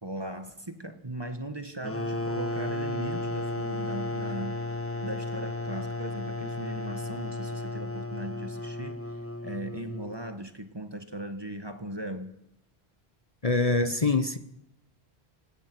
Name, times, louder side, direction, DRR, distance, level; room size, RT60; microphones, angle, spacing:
voice 1, 0.0-4.6 5.0-9.1 9.4-12.4, right 1 dB, 25° right, 8 dB, 1.5 m, -38 dB
sound 1, 1.8-10.3, left 2 dB, 15° left, 1.2 m, -34 dB
voice 2, 13.4-14.4, left 3 dB, 35° left, 10 dB, 1.1 m, -24 dB
24.5 x 20.0 x 6.2 m, 0.78 s
omnidirectional pair, 1.1 m